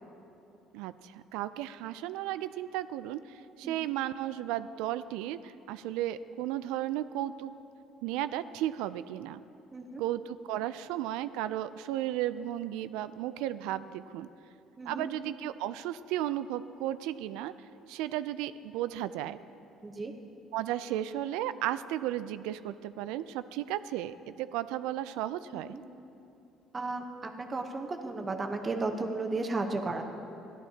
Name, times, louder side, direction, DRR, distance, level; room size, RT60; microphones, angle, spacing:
voice 1, 0.7-7.5 8.0-9.4 10.0-14.3 14.9-17.5 17.9-19.4 20.5-25.7, right 13 dB, 90° right, 14 dB, 0.3 m, -34 dB
voice 2, 9.7-10.0 14.8-15.1 19.8-20.1 25.5-25.8 26.7-30.0, right 3 dB, 25° right, 4 dB, 0.9 m, -34 dB
14.5 x 11.5 x 2.8 m, 2.8 s
cardioid pair, 110°, 0 cm